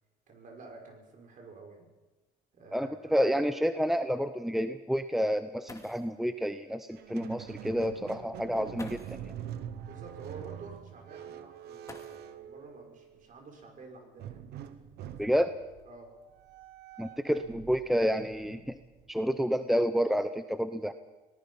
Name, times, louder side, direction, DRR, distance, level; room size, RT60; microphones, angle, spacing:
voice 1, 0.3-1.9 2.5-3.3 9.8-14.7 15.9-16.1, right 4 dB, 50° right, 3 dB, 5.5 m, -50 dB
sound 1, 2.3-2.4 3.0-3.1 5.3-5.4 5.7-6.2 7.5-7.6 8.7-9.3 11.8-12.6 13.9-14.0 14.8-16.2 16.9-17.3 17.6-18.0, left 3 dB, 20° left, 2.5 m, -52 dB
voice 2, 2.7-9.2 15.2-15.5 17.0-18.8 19.1-20.9, equal, ahead, 10 dB, 0.8 m, -29 dB
Squeak, 6.9-13.2 14.2-19.4, right 10 dB, 75° right, 1.4 m, -45 dB
25.0 x 18.5 x 5.6 m, 1.2 s
cardioid pair, 110°, 17 cm